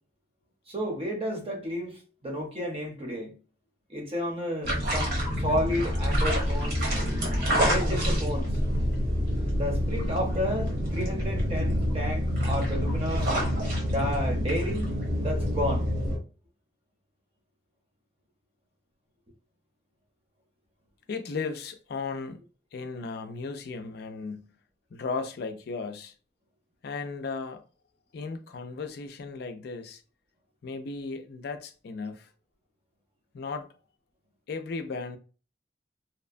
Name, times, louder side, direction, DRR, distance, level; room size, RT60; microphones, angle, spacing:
voice 1, 0.7-3.3 3.9-6.8 7.5-8.5 9.5-13.3 13.8-15.9, equal, 35° right, 0.7 m, -32 dB
sound 1, 4.6-16.2, equal, 60° right, 1.0 m, -27 dB
voice 2, 21.1-22.4 22.7-24.5 24.9-26.1 26.8-27.6 28.1-30.0 30.6-32.3 33.3-33.7 34.5-35.2, left 4 dB, 65° left, 0.4 m, -35 dB
2.8 x 2.1 x 2.5 m
head